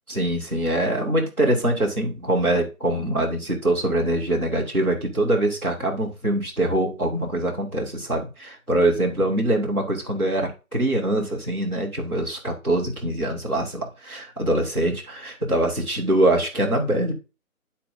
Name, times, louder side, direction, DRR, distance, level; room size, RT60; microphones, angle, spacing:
voice 1, 0.1-17.1, right 1 dB, 5° left, -12 dB, 1.2 m, -23 dB
10.0 x 4.2 x 3.8 m, 0.30 s
figure-of-eight pair, 165°, 44 cm